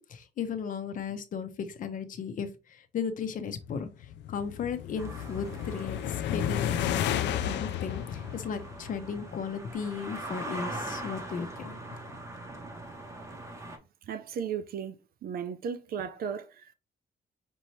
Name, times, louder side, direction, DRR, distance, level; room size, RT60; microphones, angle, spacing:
voice 1, 0.0-3.9 4.3-11.8, left 6 dB, 50° left, 0.6 m, -36 dB
sound 1, 3.9-9.3, left 10 dB, 90° left, 0.4 m, -32 dB
sound 2, 5.0-13.8, right 1 dB, 15° right, 0.7 m, -42 dB
voice 2, 14.1-15.0 15.2-16.7, right 7 dB, 60° right, 0.5 m, -35 dB
5.3 x 2.8 x 3.1 m
cardioid pair, 175°, 18 cm